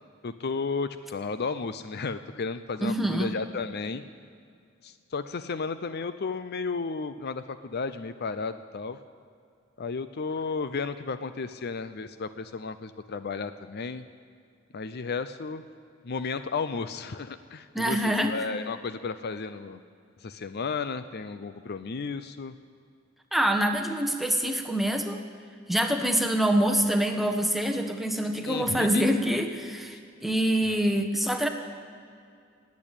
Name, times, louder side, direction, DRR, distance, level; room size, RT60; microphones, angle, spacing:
voice 1, 0.2-4.0 4.8-9.0 9.8-14.0 14.7-15.6 16.0-19.8 20.2-22.5 28.5-29.0 30.6-30.9, left 4 dB, 55° left, 12 dB, 0.6 m, -33 dB
voice 2, 2.8-3.3 17.7-18.3 23.3-25.2 25.7-31.5, right 1 dB, ahead, 4 dB, 1.2 m, -25 dB
19.0 x 8.5 x 9.0 m, 2.3 s
head